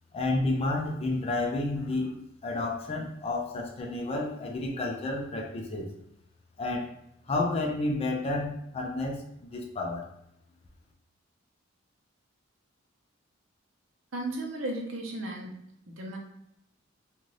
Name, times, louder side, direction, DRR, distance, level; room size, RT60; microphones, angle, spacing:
voice 1, 0.1-5.9 6.6-6.9 7.3-10.1, left 2 dB, 30° left, 0 dB, 0.4 m, -31 dB
voice 2, 14.1-15.5 15.9-16.2, right 1 dB, 80° right, 0 dB, 0.8 m, -34 dB
2.6 x 2.5 x 3.1 m, 0.80 s
head